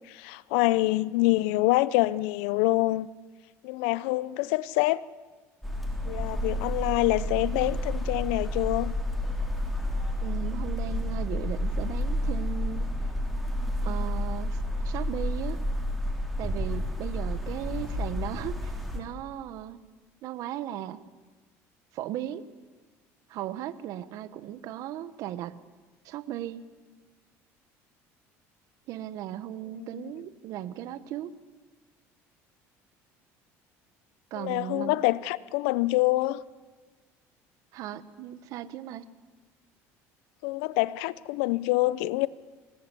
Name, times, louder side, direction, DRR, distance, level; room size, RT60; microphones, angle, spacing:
voice 1, 0.1-3.1 3.6-5.0 6.1-8.9 29.7-30.0 34.4-36.4 40.4-42.3, left 19 dB, 90° left, 0.8 m, -26 dB
sound 1, 5.6-19.0, left 1 dB, ahead, 4.3 m, -30 dB
voice 2, 10.2-12.9 13.8-15.6 16.4-19.8 20.2-21.0 21.9-22.4 23.3-25.5 26.0-26.6 28.9-31.4 34.3-35.0 37.7-39.1, right 12 dB, 65° right, 1.4 m, -37 dB
26.5 x 19.5 x 9.9 m
cardioid pair, 130°, 6 cm